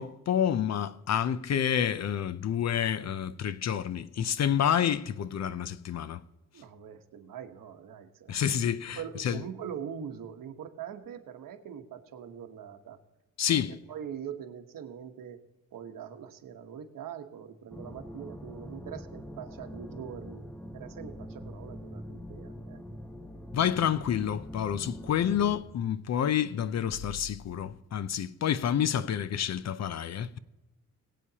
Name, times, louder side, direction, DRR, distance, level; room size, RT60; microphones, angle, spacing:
voice 1, 0.0-6.2 8.3-9.5 13.4-13.8 23.5-30.4, left 9 dB, 55° left, 0.6 m, -29 dB
voice 2, 6.5-8.3 9.0-13.0 13.5-13.6 13.9-15.4 15.7-20.5 20.7-22.8, right 8 dB, 85° right, 1.2 m, -42 dB
sound 1, 17.7-25.6, equal, 5° left, 0.7 m, -43 dB
21.5 x 8.5 x 2.8 m
wide cardioid pair, 130°, 32 cm